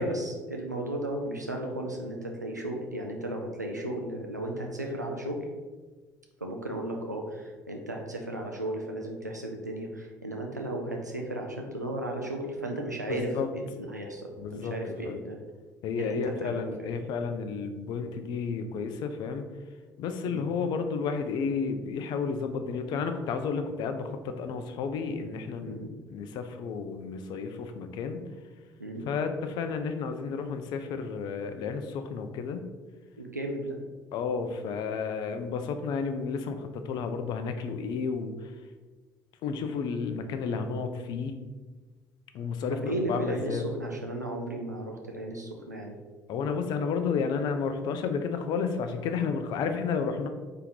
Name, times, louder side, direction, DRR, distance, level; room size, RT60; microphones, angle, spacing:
voice 1, 0.0-5.5 6.4-15.4 16.0-17.0 20.2-20.4 25.7-25.9 28.8-29.1 33.2-33.8 42.7-46.0, right 1 dB, 90° right, 1 dB, 0.4 m, -35 dB
voice 2, 13.1-13.5 14.4-15.2 15.8-19.5 20.0-25.8 26.1-28.2 29.1-32.7 34.1-38.5 39.4-41.4 42.3-43.6 46.3-50.3, left 5 dB, 50° left, 8 dB, 0.5 m, -32 dB
4.4 x 2.9 x 3.8 m, 1.3 s
figure-of-eight pair, 55°, 9 cm